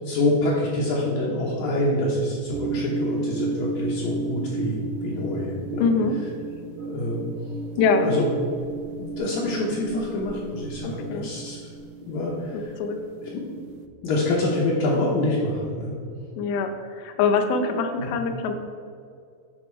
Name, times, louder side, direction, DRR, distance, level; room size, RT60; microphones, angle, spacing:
voice 1, 0.0-4.8 5.0-5.9 6.8-7.5 8.0-8.2 9.0-11.6 12.1-12.7 13.2-13.4 14.0-15.9 18.0-18.1, left 1 dB, 65° left, -5 dB, 2.1 m, -26 dB
sound 1, 2.5-13.9, right 3 dB, 85° right, 1.9 m, -34 dB
voice 2, 5.8-6.2 7.8-8.2 10.8-11.3 12.5-13.0 16.4-18.5, left 4 dB, 85° left, 6 dB, 2.6 m, -24 dB
11.0 x 4.2 x 4.6 m, 2.3 s
omnidirectional pair, 4.3 m